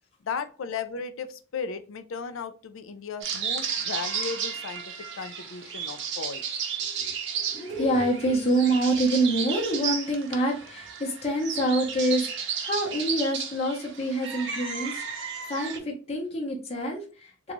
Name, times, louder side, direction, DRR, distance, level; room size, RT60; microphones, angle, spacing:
voice 1, 0.2-4.8 5.2-6.4, left 5 dB, 65° left, 11 dB, 0.4 m, -35 dB
sound 1, 3.2-15.8, right 6 dB, 55° right, 0.7 m, -33 dB
voice 2, 7.5-17.5, right 1 dB, 30° left, -2 dB, 0.8 m, -27 dB
3.8 x 2.3 x 3.0 m, 0.37 s
head